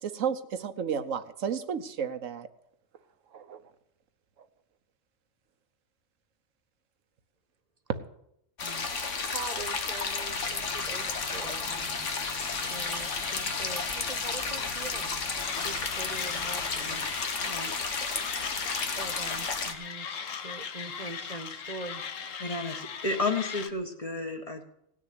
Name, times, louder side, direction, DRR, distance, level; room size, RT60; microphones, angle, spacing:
voice 1, 0.0-2.5 3.3-3.6, right 7 dB, 85° right, 9 dB, 1.3 m, -32 dB
sound 1, 8.6-19.7, left 4 dB, 75° left, 1.6 m, -32 dB
voice 2, 9.3-12.1 12.5-15.1 15.5-17.0 17.4-17.7 19.0-22.0, right 3 dB, 35° right, 8 dB, 1.2 m, -43 dB
Typing, 10.3-17.2, left 4 dB, 50° left, 2.0 m, -48 dB
Mechanisms, 15.4-23.7, left 7 dB, 90° left, 1.4 m, -39 dB
voice 3, 22.4-24.6, left 3 dB, 30° left, 3 dB, 1.6 m, -31 dB
17.5 x 6.5 x 9.5 m, 0.77 s
omnidirectional pair, 1.3 m